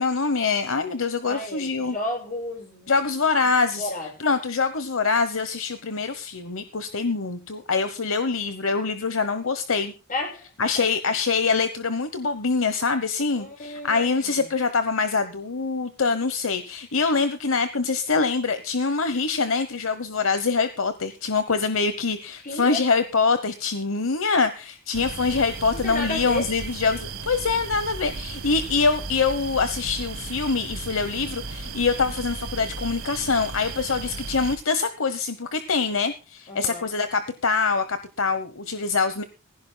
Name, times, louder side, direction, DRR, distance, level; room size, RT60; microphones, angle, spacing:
voice 1, 0.0-1.9 2.9-3.9 4.2-9.9 10.6-39.2, left 4 dB, 70° left, 10 dB, 1.1 m, -24 dB
voice 2, 1.2-2.9 3.8-4.1 10.1-10.5 10.7-10.8 13.3-14.4 22.4-22.8 25.7-26.5 36.5-36.9, left 1 dB, 40° left, 1 dB, 7.4 m, -32 dB
sound 1, 24.9-34.6, right 4 dB, 70° right, 2.1 m, -35 dB
19.5 x 16.5 x 2.3 m, 0.32 s
head